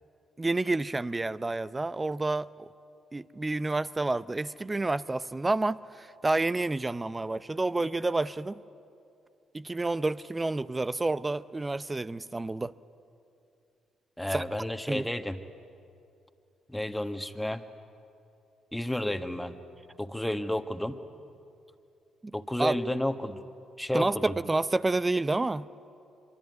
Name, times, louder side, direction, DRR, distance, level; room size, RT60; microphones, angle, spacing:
voice 1, 0.4-2.7 3.1-8.6 9.5-12.7 14.3-14.4 14.9-15.1 22.2-22.3 22.6-22.7 23.9-25.7, right 2 dB, 20° right, 16 dB, 0.7 m, -29 dB
voice 2, 14.2-15.4 16.7-17.6 18.7-19.6 20.0-20.9 22.3-23.4 23.8-24.3, left 1 dB, 5° left, 8 dB, 1.5 m, -31 dB
24.0 x 24.0 x 9.4 m, 2.6 s
supercardioid pair, 60°, 0 cm